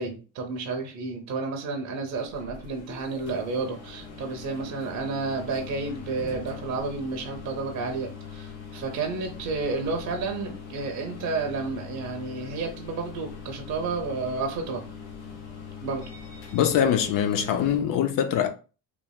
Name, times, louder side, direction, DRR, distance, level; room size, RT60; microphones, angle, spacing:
voice 1, 0.0-14.8 15.8-16.0, right 4 dB, 45° right, 0.7 m, -31 dB
sound 1, 2.1-17.8, left 5 dB, 90° left, 1.0 m, -42 dB
voice 2, 16.5-18.5, left 9 dB, 55° left, 0.5 m, -23 dB
3.2 x 2.3 x 2.2 m
cardioid pair, 115°, 40 cm